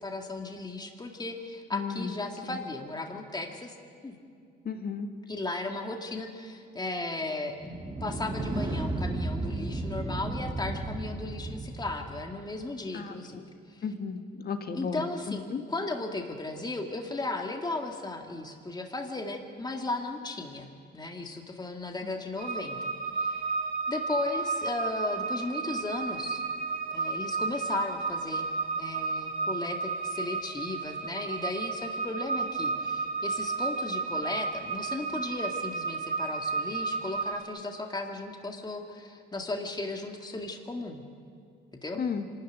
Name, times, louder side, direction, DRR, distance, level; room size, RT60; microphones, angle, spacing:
voice 1, 0.0-3.7 4.0-4.2 5.3-13.4 13.7-13.8 14.7-15.4 15.7-20.7 20.9-23.5 23.9-26.4 26.9-28.5 28.8-41.0 41.8-42.0, left 2 dB, 20° left, 3 dB, 2.1 m, -36 dB
voice 2, 1.7-2.1 2.5-2.6 4.7-5.1 12.9-13.5 13.8-15.6 42.0-42.3, left 5 dB, 50° left, 6 dB, 1.8 m, -34 dB
sound 1, 7.6-12.5, right 2 dB, 20° right, 2.3 m, -34 dB
sound 2, 22.4-37.4, right 4 dB, 45° right, 5.0 m, -32 dB
25.0 x 13.5 x 9.4 m, 2.3 s
cardioid pair, 90°, 20 cm